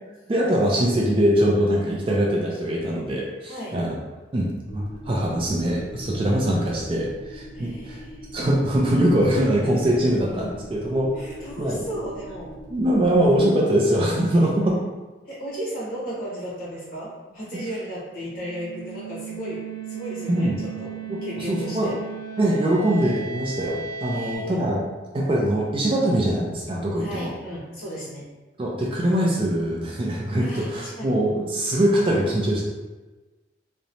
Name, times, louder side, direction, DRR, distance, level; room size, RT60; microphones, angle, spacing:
voice 1, 0.3-4.0 4.3-8.0 8.3-11.1 11.6-11.8 12.7-14.8 20.3-20.6 21.1-21.2 21.5-21.9 22.4-24.8 25.1-27.3 28.6-32.6, right 1 dB, 30° right, -3 dB, 0.3 m, -22 dB
sound 1, 4.7-13.4, equal, 30° left, 0.5 m, -41 dB
voice 2, 7.5-8.2 11.1-12.5 14.3-14.5 15.3-20.9 21.2-22.0 24.1-24.7 27.0-28.3 30.4-31.2, equal, 50° left, -7 dB, 0.9 m, -35 dB
sound 2, 18.1-24.4, right 6 dB, 80° left, 0.5 m, -36 dB
2.9 x 2.1 x 2.6 m, 1.2 s
head